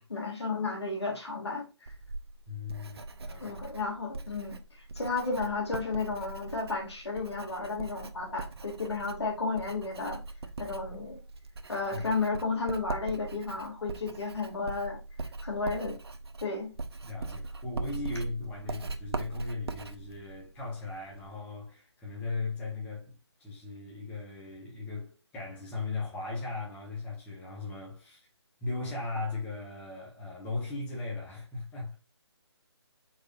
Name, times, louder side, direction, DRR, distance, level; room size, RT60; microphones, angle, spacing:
voice 1, 0.1-1.9 3.4-4.6 5.0-10.2 10.6-11.2 11.7-15.0 15.4-16.0 16.4-16.7, left 3 dB, 70° left, 2.2 m, -33 dB
Writing, 1.9-21.4, right 3 dB, 65° right, 0.7 m, -41 dB
voice 2, 2.5-3.6 11.9-12.1 17.1-23.1 23.4-28.3 28.6-31.9, left 3 dB, 10° left, 1.2 m, -38 dB
4.9 x 4.2 x 2.4 m
figure-of-eight pair, 155°, 14 cm